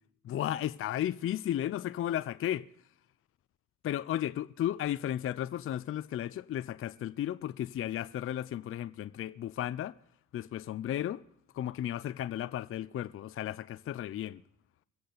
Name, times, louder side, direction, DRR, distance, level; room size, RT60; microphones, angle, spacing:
voice 1, 0.2-2.6 3.8-10.0 10.3-11.2 11.5-14.4, left 11 dB, 45° left, 0.4 m, -34 dB
22.5 x 8.4 x 3.9 m
cardioid pair, 90°, 30 cm